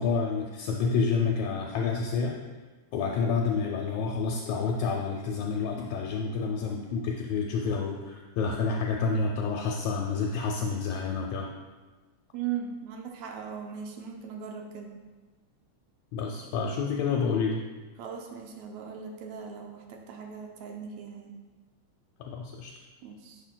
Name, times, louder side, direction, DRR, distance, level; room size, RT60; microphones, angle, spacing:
voice 1, 0.0-2.4 2.9-11.5 16.1-17.6 22.2-22.7, left 5 dB, 80° left, 0 dB, 1.8 m, -29 dB
voice 2, 12.3-14.9 18.0-21.4 23.0-23.4, right 7 dB, 80° right, 2 dB, 1.8 m, -38 dB
10.0 x 6.0 x 2.2 m, 1.3 s
omnidirectional pair, 3.4 m